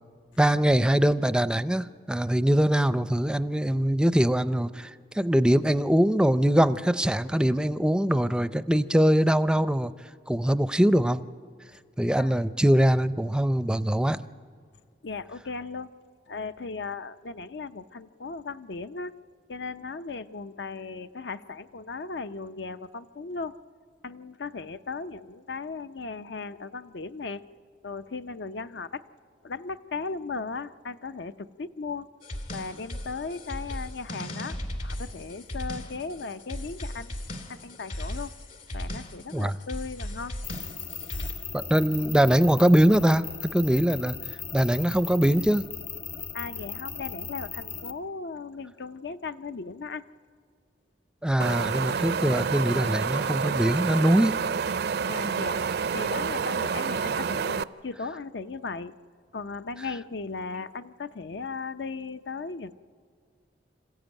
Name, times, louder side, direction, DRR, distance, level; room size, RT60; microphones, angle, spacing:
voice 1, 0.4-9.9 10.3-11.2 12.0-14.2 39.3-39.6 41.5-44.1 44.5-45.7 51.2-54.4, right 1 dB, 5° right, 13 dB, 0.5 m, -22 dB
voice 2, 15.0-15.9 16.3-19.1 19.5-23.5 24.0-27.4 27.8-29.0 29.4-32.1 32.5-37.2 37.5-38.3 38.7-40.3 46.3-50.0 55.1-55.6 55.9-58.9 59.3-62.8, left 4 dB, 75° left, 12 dB, 0.7 m, -37 dB
sound 1, 32.2-41.3, left 1 dB, 50° left, 2.3 m, -37 dB
sound 2, 40.4-47.9, left 6 dB, 35° left, 0.9 m, -38 dB
Wind, 51.4-57.6, right 6 dB, 65° right, 0.5 m, -28 dB
26.5 x 14.5 x 9.1 m, 2.1 s
head